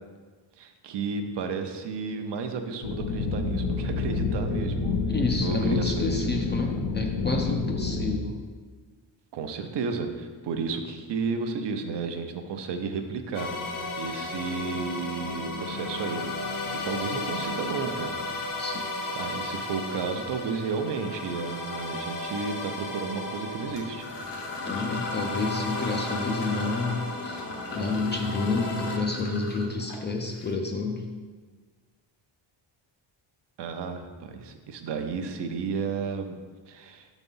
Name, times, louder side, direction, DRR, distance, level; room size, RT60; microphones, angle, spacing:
voice 1, 0.6-5.0 5.4-6.4 9.3-13.5 14.0-18.5 19.1-24.1 33.6-36.4 36.7-37.1, right 5 dB, 60° right, 6 dB, 0.7 m, -32 dB
sound 1, 2.8-8.2, left 4 dB, 80° left, 0.9 m, -28 dB
voice 2, 5.1-8.3 18.6-18.9 24.6-27.4 27.7-31.0, left 3 dB, 25° left, 2 dB, 0.4 m, -29 dB
sound 2, 13.3-29.0, left 2 dB, 40° left, 0.8 m, -34 dB
sound 3, 23.7-30.5, left 2 dB, 60° left, 1.1 m, -40 dB
6.9 x 4.1 x 5.5 m, 1.4 s
cardioid pair, 170°, 48 cm